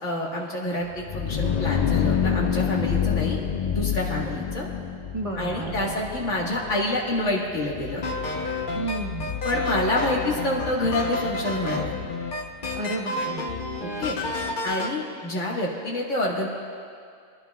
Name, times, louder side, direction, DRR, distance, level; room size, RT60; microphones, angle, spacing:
voice 1, 0.0-4.7 5.4-8.1 9.4-11.9 13.8-14.2 14.6-16.5, left 1 dB, 70° left, -3 dB, 2.0 m, -27 dB
sound 1, 0.9-12.5, left 8 dB, 90° left, 0.3 m, -29 dB
voice 2, 5.1-6.0 8.7-9.3 12.8-13.5, right 2 dB, 30° right, -2 dB, 0.9 m, -32 dB
sound 2, 8.0-14.9, left 2 dB, 45° left, 0.9 m, -30 dB
24.0 x 11.0 x 2.3 m, 2.3 s
omnidirectional pair, 1.3 m